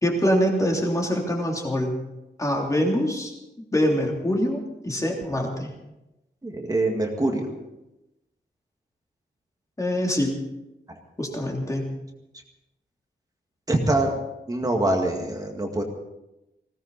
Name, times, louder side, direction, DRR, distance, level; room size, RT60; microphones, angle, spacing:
voice 1, 0.0-1.9 2.4-3.3 3.7-5.7 9.8-10.4 11.2-12.0, equal, 15° left, -1 dB, 3.2 m, -24 dB
voice 2, 6.4-7.5 13.7-14.2 14.5-15.8, right 2 dB, 20° right, 2 dB, 2.0 m, -24 dB
20.0 x 17.5 x 4.1 m, 0.94 s
wide cardioid pair, 175°, 19 cm